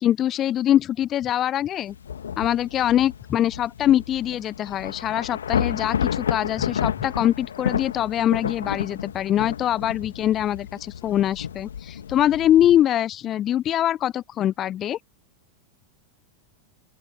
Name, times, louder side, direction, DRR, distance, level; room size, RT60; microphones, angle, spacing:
voice 1, 0.0-1.9 2.4-15.0, left 11 dB, 30° left, 0.9 m, -23 dB
Thunder / Rain, 1.9-12.8, left 8 dB, 65° left, 2.0 m, -31 dB
open air
figure-of-eight pair, 90°, 0 cm